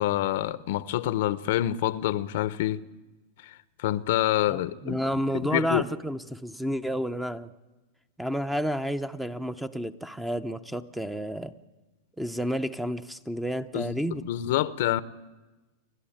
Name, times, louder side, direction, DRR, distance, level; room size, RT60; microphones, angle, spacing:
voice 1, 0.0-2.8 3.4-5.0 5.3-5.8 13.7-15.0, left 14 dB, 65° left, 0.7 m, -27 dB
voice 2, 4.5-7.5 8.2-11.5 12.2-14.2, equal, 5° right, 0.8 m, -30 dB
29.5 x 11.0 x 8.8 m
hypercardioid pair, 125°, 0 cm